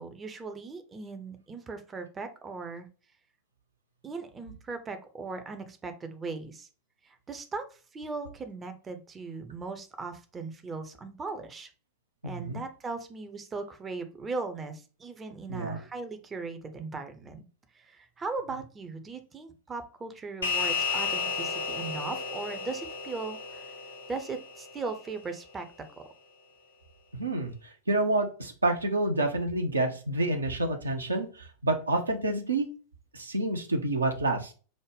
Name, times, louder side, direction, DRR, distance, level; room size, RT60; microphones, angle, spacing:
voice 1, 0.0-2.9 4.0-6.7 7.0-11.7 12.2-17.4 17.7-23.7 24.1-25.7, right 4 dB, 20° right, 8 dB, 0.5 m, -38 dB
voice 2, 12.2-12.6 15.5-15.8 27.1-27.5 27.9-32.7 33.1-34.5, right 2 dB, 80° right, 5 dB, 0.5 m, -28 dB
sound 1, 20.4-25.1, left 5 dB, 75° left, 0.7 m, -33 dB
5.0 x 2.1 x 3.3 m, 0.37 s
figure-of-eight pair, 90°, 0 cm